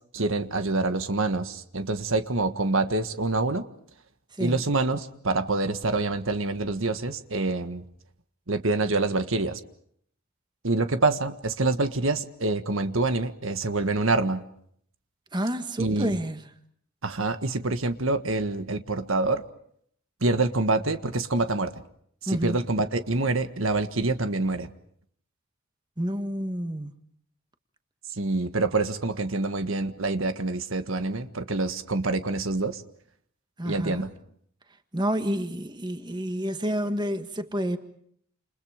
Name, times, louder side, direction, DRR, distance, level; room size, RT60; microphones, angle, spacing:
voice 1, 0.1-3.6 4.4-7.8 8.5-9.6 10.6-14.4 15.8-16.2 17.0-19.4 20.2-21.7 22.2-24.7 28.2-32.8 33.6-34.1, right 2 dB, 65° right, 1.6 m, -26 dB
voice 2, 15.3-16.5 22.3-22.6 26.0-26.9 33.6-34.1 34.9-37.8, equal, 20° right, 1.7 m, -29 dB
30.0 x 28.5 x 5.1 m
head